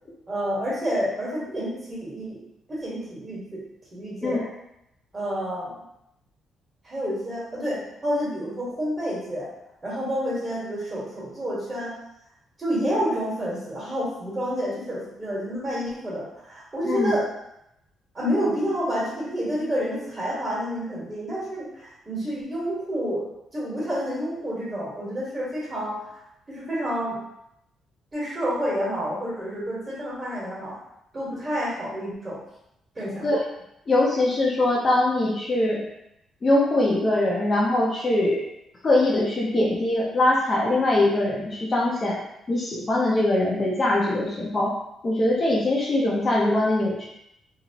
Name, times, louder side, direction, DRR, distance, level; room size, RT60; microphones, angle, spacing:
voice 1, 0.3-2.4 2.7-3.6 3.9-4.4 5.1-5.7 6.8-9.5 9.8-11.9 12.6-17.3 18.1-23.3 23.5-26.2 26.5-27.2 28.1-30.8 31.1-32.4 32.9-33.2, equal, 25° right, -7 dB, 1.4 m, -29 dB
voice 2, 33.9-35.8 36.4-38.5 38.8-42.2 42.5-44.7 45.0-47.1, left 1 dB, 35° left, -3 dB, 0.5 m, -22 dB
2.8 x 2.0 x 2.8 m, 0.81 s
cardioid pair, 90°, 0 cm